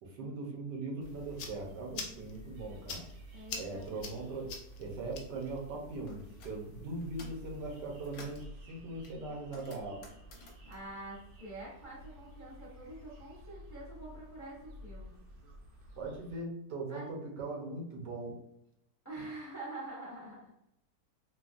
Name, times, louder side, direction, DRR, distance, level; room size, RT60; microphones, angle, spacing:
voice 1, 0.0-3.0 3.6-4.5 4.8-10.0 16.0-18.4, right 2 dB, 85° right, -1 dB, 1.5 m, -40 dB
sound 1, 1.0-8.4, left 4 dB, 85° left, 1.2 m, -48 dB
sound 2, 1.0-16.4, equal, 65° right, 0.9 m, -52 dB
voice 2, 3.3-4.3 10.7-15.1 16.9-17.1 19.0-20.7, right 2 dB, 10° left, -7 dB, 0.9 m, -46 dB
sound 3, 6.1-6.6 7.0-7.5 7.8-8.5 9.0-12.0 12.2-13.4, left 2 dB, 60° left, 1.2 m, -55 dB
4.0 x 2.3 x 2.4 m, 0.77 s
omnidirectional pair, 1.8 m